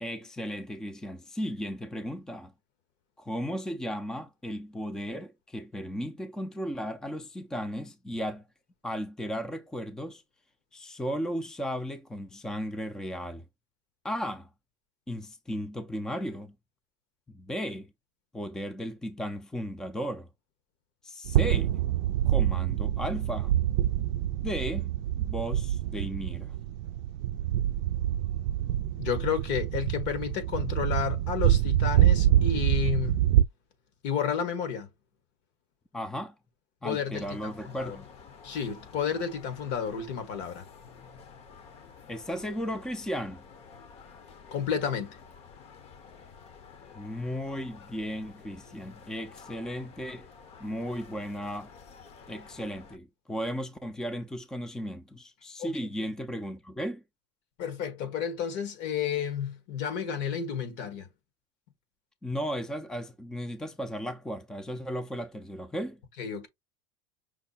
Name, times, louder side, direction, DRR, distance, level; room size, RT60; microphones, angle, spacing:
voice 1, 0.0-2.5 3.2-8.4 8.8-10.2 10.7-13.4 14.0-14.5 15.1-16.5 17.3-17.9 18.3-20.3 21.0-21.7 22.3-23.5 24.4-24.9 25.2-26.5 35.9-36.3 36.8-38.1 42.1-43.4 46.9-50.3 50.6-51.7 52.3-57.0 62.2-66.0, equal, 5° left, 0.5 m, -35 dB
sound 1, 21.2-33.4, right 12 dB, 85° right, 0.4 m, -26 dB
voice 2, 29.0-33.2 34.0-34.9 36.8-38.0 38.4-40.7 44.5-45.2 55.6-55.8 57.6-61.1 66.2-66.5, left 7 dB, 60° left, 1.6 m, -31 dB
sound 2, 37.1-53.0, left 5 dB, 45° left, 1.0 m, -51 dB
5.8 x 2.1 x 4.1 m
supercardioid pair, 135°, 14 cm